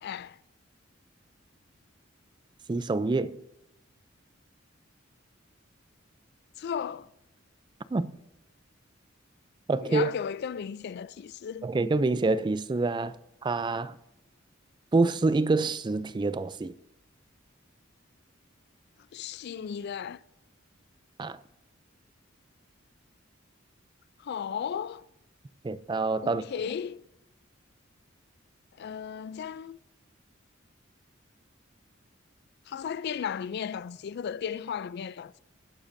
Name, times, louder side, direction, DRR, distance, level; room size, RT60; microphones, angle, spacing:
voice 1, 0.0-0.4 6.6-7.1 9.8-11.7 19.1-20.2 24.2-25.1 26.2-27.1 28.8-29.8 32.7-35.4, left 7 dB, 55° left, 0.3 m, -35 dB
voice 2, 2.7-3.4 7.9-8.1 9.7-10.1 11.6-13.2 13.4-14.0 14.9-16.7 21.2-21.4 25.6-26.4, right 3 dB, 20° right, 0.3 m, -26 dB
22.0 x 10.0 x 2.6 m
head